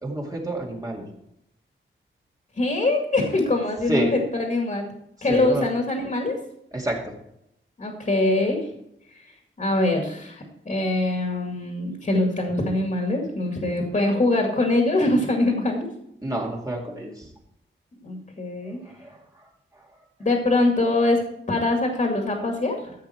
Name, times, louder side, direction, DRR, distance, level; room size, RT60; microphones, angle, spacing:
voice 1, 0.0-1.0 3.9-4.1 5.3-5.6 6.7-7.0 16.2-17.3 19.0-19.2, right 1 dB, 15° right, -2 dB, 2.3 m, -28 dB
voice 2, 2.6-4.9 5.2-6.3 7.8-8.7 9.6-15.9 18.0-18.8 20.2-21.2 21.5-22.9, left 2 dB, 40° left, 1 dB, 2.3 m, -23 dB
14.0 x 8.1 x 4.5 m, 0.78 s
wide cardioid pair, 165°, 21 cm